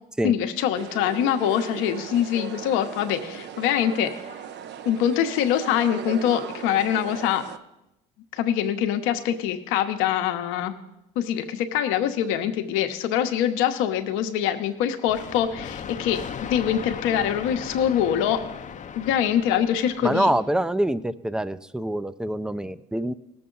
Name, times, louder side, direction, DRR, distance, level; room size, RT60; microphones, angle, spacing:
voice 1, 0.2-4.1 4.8-7.4 8.3-10.8 11.1-18.4 19.0-20.3, left 10 dB, 80° left, 7 dB, 1.0 m, -24 dB
sound 1, 0.7-7.6, right 8 dB, 60° right, 0.7 m, -38 dB
sound 2, 15.1-20.7, left 7 dB, 40° left, 0.7 m, -37 dB
voice 2, 20.0-23.1, right 1 dB, 5° right, 14 dB, 0.5 m, -25 dB
18.0 x 7.0 x 3.9 m, 0.90 s
supercardioid pair, 80°, 20 cm